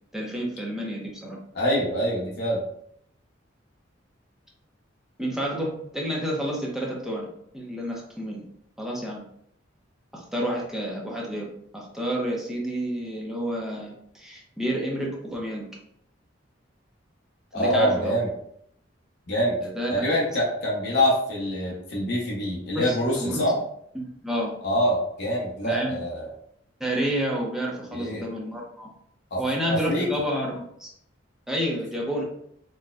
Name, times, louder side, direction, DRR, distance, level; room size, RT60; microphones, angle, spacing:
voice 1, 0.1-1.4 5.2-7.3 7.5-8.4 8.8-9.2 10.1-11.5 11.7-15.7 17.5-18.2 19.6-19.9 22.7-23.5 23.9-24.6 25.6-26.0 26.8-28.9 29.4-30.9 31.5-32.2, equal, 5° right, -3 dB, 0.6 m, -29 dB
voice 2, 1.5-2.6 17.5-18.3 19.3-19.6 19.9-23.5 24.6-26.3 27.9-28.2 29.3-29.4 29.7-30.1, equal, 60° left, -4 dB, 0.8 m, -25 dB
4.1 x 2.2 x 2.4 m, 0.70 s
head